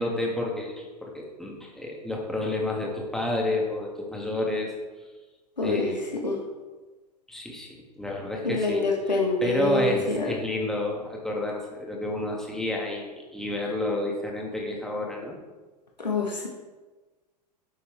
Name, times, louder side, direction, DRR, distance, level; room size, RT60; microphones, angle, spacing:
voice 1, 0.0-4.7 5.6-6.1 7.3-15.4, left 1 dB, ahead, -1 dB, 1.9 m, -30 dB
voice 2, 5.6-5.9 6.2-6.4 8.4-10.3 16.0-16.5, left 3 dB, 80° left, 0 dB, 1.3 m, -26 dB
11.0 x 6.7 x 3.4 m, 1.2 s
figure-of-eight pair, 85°, 21 cm